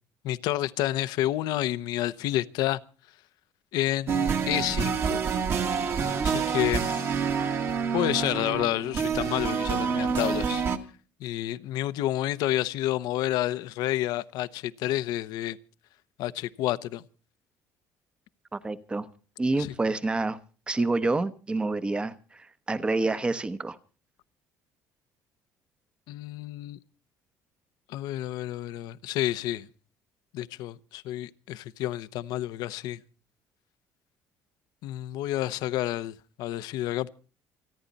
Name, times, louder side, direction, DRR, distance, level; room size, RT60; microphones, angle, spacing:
voice 1, 0.2-2.8 3.7-5.2 5.8-7.6 7.9-10.7 11.2-15.6 16.2-17.0 19.6-19.7 26.1-26.8 27.9-29.7 30.3-33.0 34.8-37.1, left 14 dB, 75° left, 0.9 m, -30 dB
sound 1, 4.1-10.8, right 6 dB, 40° right, 1.6 m, -27 dB
voice 2, 18.5-19.1 19.4-20.4 20.7-23.8, right 2 dB, 15° right, 1.0 m, -28 dB
28.5 x 10.5 x 4.1 m
cardioid pair, 155°, 7 cm